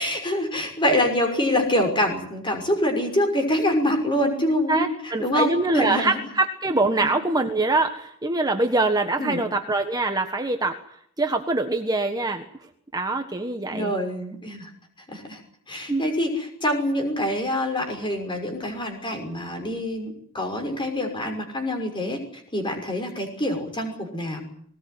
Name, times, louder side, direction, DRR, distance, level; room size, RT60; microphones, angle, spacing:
voice 1, 0.0-4.9 5.2-6.1 7.0-7.1 9.2-9.4 13.7-14.7 15.1-15.4 15.7-22.2 22.5-24.4, left 1 dB, 25° left, 4 dB, 6.0 m, -25 dB
voice 2, 4.7-10.8 11.2-12.4 12.9-13.9 15.9-16.0, right 2 dB, 20° right, 5 dB, 1.5 m, -24 dB
20.0 x 19.0 x 9.5 m, 0.67 s
head